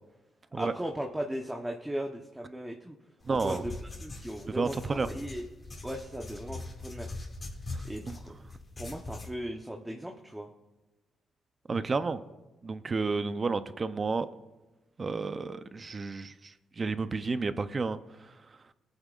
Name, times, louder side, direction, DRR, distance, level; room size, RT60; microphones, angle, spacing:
voice 1, 0.5-3.0 3.3-3.7 4.0-5.5 5.8-7.1 7.8-8.3 8.8-10.5, equal, 10° right, 0.9 m, -37 dB
sound 1, 3.2-9.3, left 2 dB, 30° left, 2.2 m, -42 dB
voice 2, 3.2-3.6 4.5-5.1 8.1-8.2 11.7-12.2 12.6-14.3 15.0-18.3, right 4 dB, 35° right, 0.6 m, -31 dB
21.0 x 8.9 x 2.5 m
cardioid pair, 90°, 0 cm